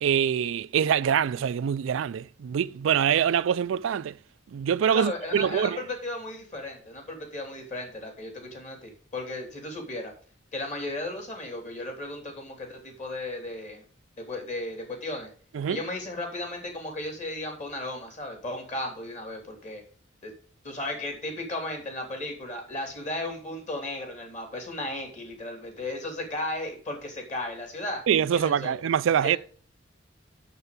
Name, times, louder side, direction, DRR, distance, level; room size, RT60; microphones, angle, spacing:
voice 1, 0.0-4.1 4.5-5.8 15.5-15.8 28.1-29.4, right 8 dB, 90° right, 0.3 m, -24 dB
voice 2, 4.9-10.1 10.5-13.8 14.2-15.3 15.7-19.8 20.2-20.3 20.6-28.0 28.3-28.9 29.2-29.4, left 1 dB, 40° left, 3.1 m, -35 dB
6.8 x 6.7 x 6.7 m
head